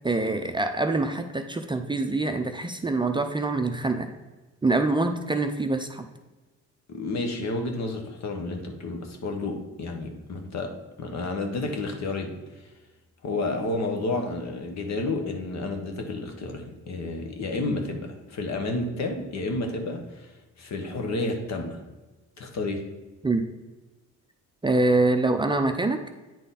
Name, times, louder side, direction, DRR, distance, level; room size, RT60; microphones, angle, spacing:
voice 1, 0.0-4.1 4.6-6.0 23.2-23.4 24.6-26.0, right 2 dB, 15° right, 5 dB, 0.5 m, -25 dB
voice 2, 6.9-10.7 11.0-12.7 13.2-20.3 20.6-21.8 22.4-22.8, left 2 dB, 60° left, 4 dB, 1.2 m, -31 dB
9.0 x 3.9 x 4.1 m, 1.2 s
cardioid pair, 90°, 30 cm